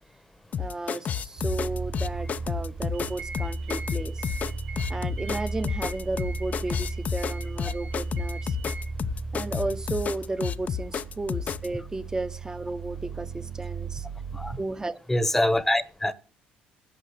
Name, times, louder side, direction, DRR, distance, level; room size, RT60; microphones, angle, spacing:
sound 1, 0.5-11.7, left 8 dB, 45° left, 0.6 m, -31 dB
voice 1, 0.6-4.3 4.9-8.6 9.3-14.1 14.6-15.0, right 2 dB, 20° right, 1.0 m, -33 dB
sound 2, 1.4-14.6, right 3 dB, 75° right, 5.6 m, -35 dB
sound 3, 2.9-8.8, right 4 dB, 50° right, 3.2 m, -43 dB
voice 2, 15.1-16.1, left 1 dB, 10° left, 1.1 m, -24 dB
11.5 x 7.5 x 6.9 m
supercardioid pair, 80°, 4 cm